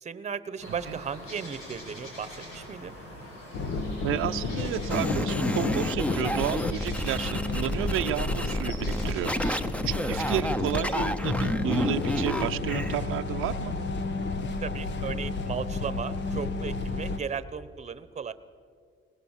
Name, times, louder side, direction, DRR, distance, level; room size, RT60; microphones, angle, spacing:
voice 1, 0.0-2.9 14.6-18.3, right 6 dB, 35° right, 15 dB, 1.0 m, -36 dB
sound 1, 0.6-9.4, left 1 dB, 90° left, 6.8 m, -44 dB
sound 2, 3.5-17.2, left 3 dB, 60° left, 1.5 m, -32 dB
voice 2, 4.0-13.7, right 12 dB, 85° right, 8 dB, 0.6 m, -32 dB
sound 3, 4.9-13.0, equal, 5° left, 0.9 m, -30 dB
20.5 x 20.5 x 7.3 m, 2.1 s
cardioid pair, 120°, 21 cm